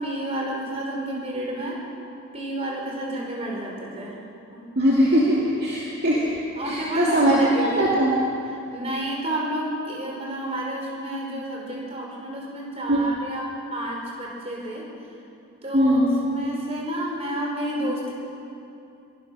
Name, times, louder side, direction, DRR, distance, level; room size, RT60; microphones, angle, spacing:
voice 1, 0.0-1.8 2.3-4.2 4.5-4.6 6.5-7.8 8.5-15.1 15.6-18.1, right 1 dB, 30° right, -1 dB, 4.7 m, -30 dB
voice 2, 4.8-8.2 12.9-13.0 15.7-16.1, equal, 45° right, -5 dB, 2.6 m, -21 dB
23.0 x 19.0 x 6.5 m, 2.7 s
head